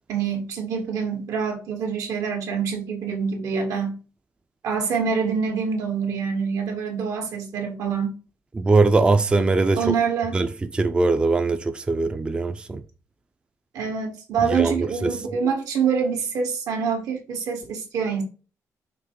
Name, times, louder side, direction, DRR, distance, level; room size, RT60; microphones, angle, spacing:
voice 1, 0.1-4.0 4.6-8.1 9.8-10.4 13.7-18.2, right 6 dB, 80° right, 1.8 m, -26 dB
voice 2, 8.6-9.8 10.3-12.8 14.4-15.2, right 3 dB, 15° right, 0.4 m, -21 dB
5.9 x 3.4 x 4.7 m
cardioid pair, 160°, 6 cm